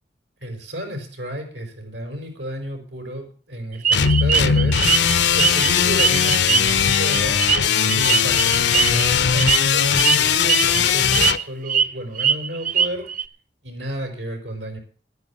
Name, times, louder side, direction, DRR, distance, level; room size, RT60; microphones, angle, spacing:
voice 1, 0.4-4.8 5.3-13.1 13.6-14.8, equal, 85° right, 4 dB, 4.9 m, -31 dB
sound 1, 3.8-5.7 6.0-9.0 9.4-9.6 10.0-10.2 10.5-10.8 11.1-11.9 12.1-13.2, right 7 dB, 45° right, 0.8 m, -21 dB
sound 2, 3.9-11.4, left 7 dB, 75° left, 0.8 m, -19 dB
12.0 x 9.6 x 7.1 m, 0.41 s
head